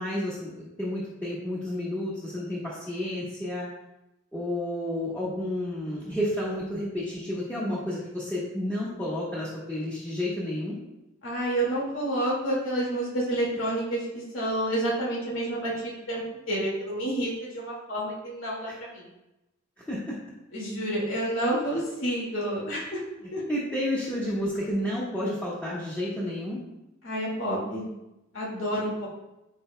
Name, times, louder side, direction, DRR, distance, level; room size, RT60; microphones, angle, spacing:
voice 1, 0.0-3.7 4.3-10.7 18.7-18.8 19.9-20.2 23.5-26.6, left 1 dB, 10° left, -8 dB, 1.4 m, -31 dB
voice 2, 11.2-19.1 20.5-23.0 23.3-23.4 27.0-27.9 28.3-29.1, right 1 dB, 85° left, -4 dB, 2.2 m, -29 dB
14.0 x 4.8 x 2.3 m, 0.94 s
head